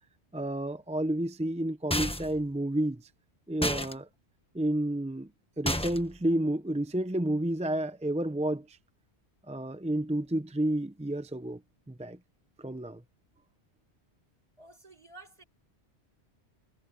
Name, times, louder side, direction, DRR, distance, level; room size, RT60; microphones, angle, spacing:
voice 1, 0.3-3.0 3.5-4.1 4.5-5.3 5.6-8.8 9.5-11.6 11.9-12.2 12.6-13.0, right 1 dB, 10° right, 0.4 m, -30 dB
sound 1, 1.9-2.4 3.6-3.9 5.7-6.2, left 1 dB, 5° left, 1.2 m, -30 dB
voice 2, 14.6-15.4, right 3 dB, 30° right, 4.7 m, -51 dB
omnidirectional pair, 1.2 m